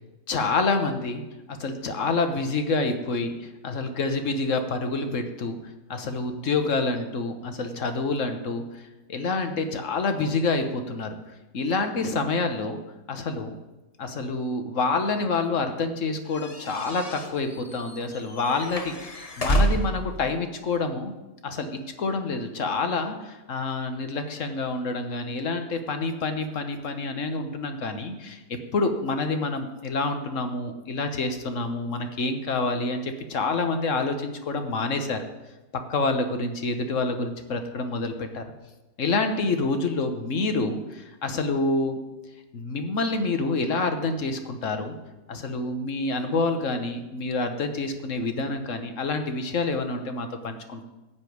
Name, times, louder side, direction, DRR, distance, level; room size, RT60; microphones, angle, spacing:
voice 1, 0.3-1.2 1.5-5.6 5.9-11.2 11.5-12.8 13.1-13.6 14.0-19.1 19.4-21.1 21.4-21.7 22.0-28.4 28.7-35.2 35.9-38.4 39.0-42.0 42.5-45.0 45.3-50.8, left 3 dB, 50° left, 7 dB, 1.4 m, -27 dB
sound 1, 16.3-20.1, right 1 dB, 25° left, 0.9 m, -28 dB
14.5 x 5.2 x 9.4 m, 1.1 s
omnidirectional pair, 1.8 m